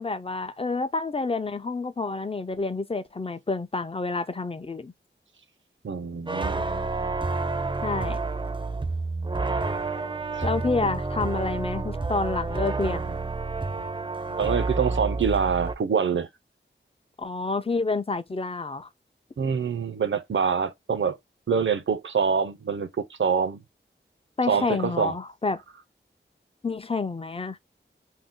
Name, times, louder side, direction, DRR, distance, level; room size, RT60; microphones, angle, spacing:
voice 1, 0.0-4.9 7.8-8.2 10.4-13.2 17.2-18.9 24.4-25.6 26.6-27.6, left 3 dB, 30° left, 0.5 m, -28 dB
voice 2, 5.8-6.7 10.3-10.4 14.4-16.3 19.4-21.2 21.5-23.6 24.5-25.1, right 6 dB, 70° right, 0.6 m, -25 dB
sound 1, 6.3-15.7, right 3 dB, 25° right, 0.5 m, -29 dB
2.7 x 2.1 x 3.6 m
wide cardioid pair, 45°, 20 cm